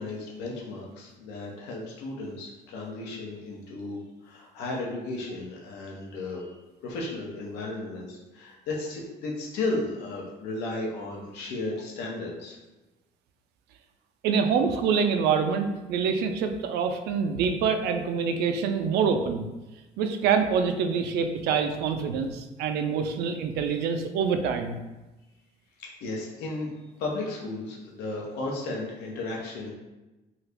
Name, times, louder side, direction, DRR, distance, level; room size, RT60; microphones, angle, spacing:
voice 1, 0.0-6.5 6.8-12.6 25.8-26.7 27.0-29.7, left 2 dB, 85° left, -2 dB, 0.7 m, -34 dB
voice 2, 14.2-19.5 20.0-24.8, right 6 dB, 75° right, 6 dB, 0.4 m, -26 dB
2.8 x 2.4 x 3.4 m, 1.1 s
cardioid pair, 110°, 17 cm